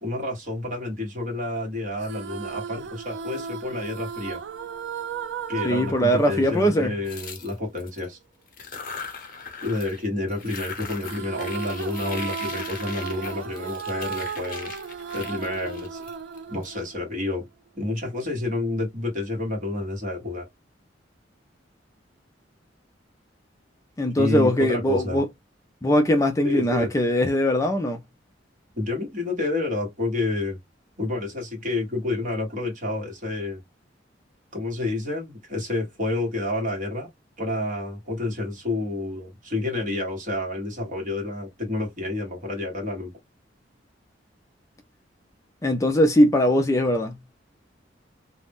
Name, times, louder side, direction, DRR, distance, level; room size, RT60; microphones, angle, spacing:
voice 1, 0.0-4.4 5.5-8.2 9.6-14.8 15.1-16.0 16.5-17.5 17.7-20.5 24.2-25.2 26.4-26.9 28.7-30.6 31.0-33.6 34.5-37.1 37.4-43.1, left 2 dB, 45° right, 1.2 m, -29 dB
sound 1, 2.0-7.5 11.0-17.4, right 7 dB, 65° right, 0.4 m, -35 dB
voice 2, 5.6-6.9 24.0-25.3 25.8-28.0 45.6-47.2, equal, 15° left, 0.3 m, -21 dB
sound 2, 7.0-8.0 8.5-10.0 10.3-16.7, left 5 dB, 45° left, 0.7 m, -39 dB
2.5 x 2.1 x 3.4 m
head